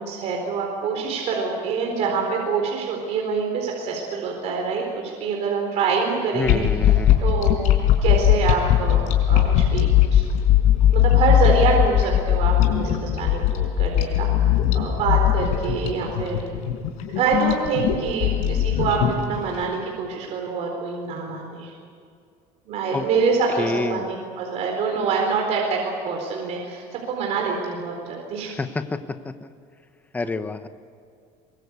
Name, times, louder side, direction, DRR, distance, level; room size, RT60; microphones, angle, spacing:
voice 1, 0.0-7.6 8.0-10.2 10.9-16.5 17.2-21.7 22.7-28.6, right 5 dB, 55° right, 1 dB, 4.3 m, -26 dB
voice 2, 6.3-7.2 22.9-23.0 23.6-24.1 28.5-29.5 30.1-30.7, left 3 dB, 10° left, 9 dB, 1.1 m, -28 dB
sound 1, 6.4-19.6, left 11 dB, 65° left, 4.8 m, -19 dB
24.0 x 23.5 x 8.3 m, 2.3 s
cardioid pair, 155°, 14 cm